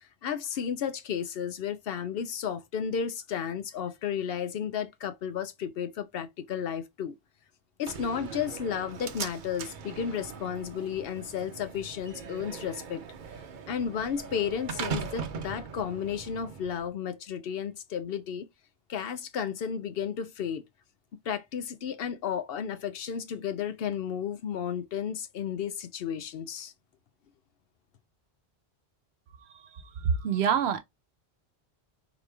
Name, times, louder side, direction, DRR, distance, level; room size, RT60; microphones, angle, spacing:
voice 1, 0.0-7.1 7.8-13.0 13.7-18.5 18.9-20.6 21.3-26.7, left 8 dB, 65° left, 0.8 m, -33 dB
Slam, 7.9-16.9, right 6 dB, 55° right, 0.7 m, -40 dB
voice 2, 30.0-30.8, right 7 dB, 75° right, 0.9 m, -25 dB
3.9 x 3.2 x 3.3 m
omnidirectional pair, 1.1 m